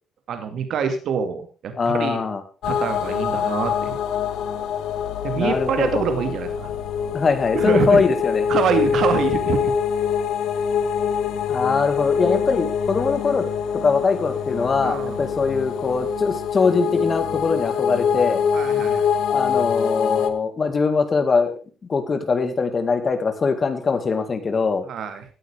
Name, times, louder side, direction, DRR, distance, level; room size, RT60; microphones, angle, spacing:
voice 1, 0.3-2.2 2.7-4.0 5.2-6.7 7.5-8.0 8.5-9.6 14.8-15.2 18.5-19.1 24.9-25.2, right 6 dB, 70° right, 7 dB, 2.2 m, -25 dB
voice 2, 1.8-2.4 5.4-6.0 7.1-8.5 11.5-13.4 13.8-18.4 19.3-21.6 21.9-24.8, left 4 dB, 40° left, 9 dB, 2.1 m, -22 dB
sound 1, 2.6-20.3, left 7 dB, 85° left, 1.4 m, -24 dB
16.0 x 9.5 x 3.5 m, 0.36 s
cardioid pair, 90°, 0 cm